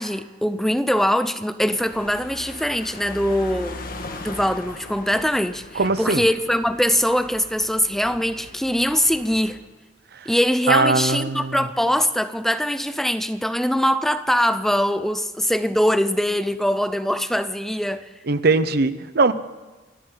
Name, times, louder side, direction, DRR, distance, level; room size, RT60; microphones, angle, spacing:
voice 1, 0.0-3.8 4.2-9.6 10.3-18.0, equal, ahead, 0.5 m, -22 dB
sound 1, 1.7-9.5, left 2 dB, 55° left, 1.7 m, -39 dB
voice 2, 5.8-6.2 10.2-10.3 10.7-11.6 18.3-19.3, right 3 dB, 60° right, 0.8 m, -20 dB
28.0 x 12.5 x 3.9 m
head